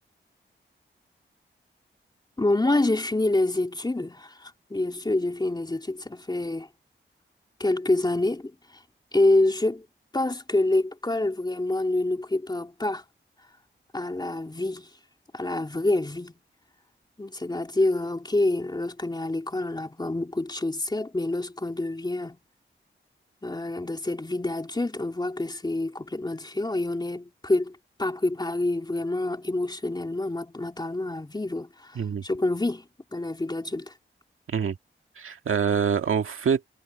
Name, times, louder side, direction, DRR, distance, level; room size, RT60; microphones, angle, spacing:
voice 1, 2.4-6.7 7.6-8.8 9.1-9.8 10.1-13.0 13.9-14.9 15.3-16.3 17.2-22.4 23.4-33.9, left 2 dB, 20° left, 3.1 m, -27 dB
voice 2, 35.2-36.8, right 7 dB, 85° right, 2.0 m, -25 dB
wide cardioid pair, 85°, 20 cm